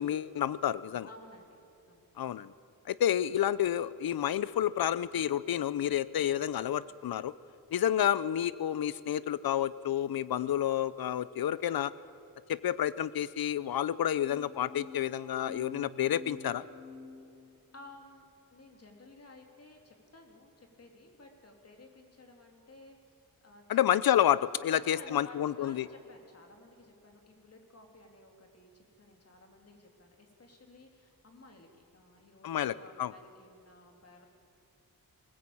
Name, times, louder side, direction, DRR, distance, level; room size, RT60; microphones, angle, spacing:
voice 1, 0.0-1.1 2.2-2.5 2.9-7.3 7.7-11.9 12.5-16.6 23.7-25.9 32.4-33.1, left 11 dB, 75° left, 18 dB, 0.7 m, -29 dB
voice 2, 1.0-2.1 17.7-23.9 24.7-34.3, left 2 dB, 40° left, 3 dB, 3.0 m, -55 dB
sound 1, 14.1-17.9, left 4 dB, 90° left, 3.8 m, -48 dB
20.0 x 19.5 x 8.6 m, 2.7 s
wide cardioid pair, 125°, 36 cm